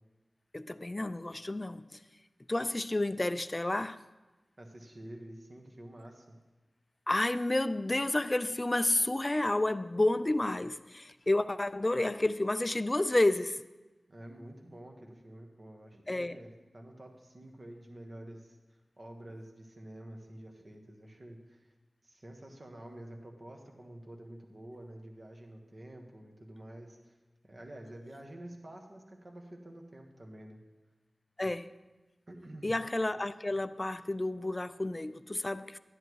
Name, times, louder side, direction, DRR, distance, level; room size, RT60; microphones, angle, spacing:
voice 1, 0.5-1.9 2.5-4.0 7.1-13.6 16.1-16.4 31.4-31.7 32.6-35.8, left 2 dB, 25° left, 13 dB, 0.3 m, -30 dB
voice 2, 4.6-6.4 14.1-18.6 19.0-21.7 22.0-27.1 27.4-30.6 32.3-32.7, right 1 dB, 45° right, 2 dB, 1.3 m, -49 dB
12.0 x 10.5 x 3.1 m, 1.1 s
wide cardioid pair, 85°, 0 cm